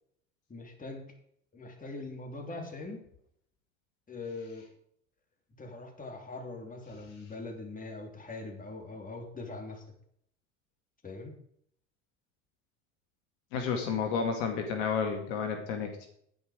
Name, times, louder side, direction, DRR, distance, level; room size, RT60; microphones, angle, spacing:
voice 1, 0.5-1.1 1.5-3.0 4.1-4.7 5.6-9.8 11.0-11.3, left 3 dB, 20° left, 2 dB, 3.3 m, -42 dB
voice 2, 13.5-16.1, left 6 dB, 65° left, 5 dB, 2.1 m, -31 dB
10.0 x 9.9 x 5.0 m, 0.69 s
hypercardioid pair, 75°, 38 cm